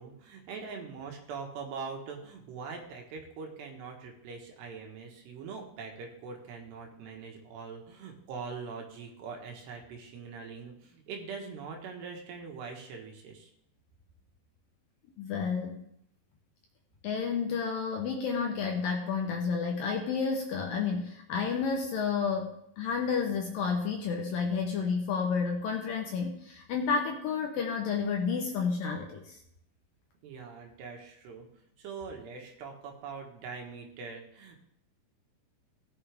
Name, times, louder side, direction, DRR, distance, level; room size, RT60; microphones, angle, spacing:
voice 1, 0.0-13.5 30.2-31.5 31.8-34.6, right 5 dB, 75° right, 2 dB, 3.6 m, -42 dB
voice 2, 15.2-15.8 17.0-29.4, left 5 dB, 70° left, 1 dB, 2.3 m, -31 dB
18.0 x 7.0 x 3.5 m, 0.75 s
omnidirectional pair, 5.0 m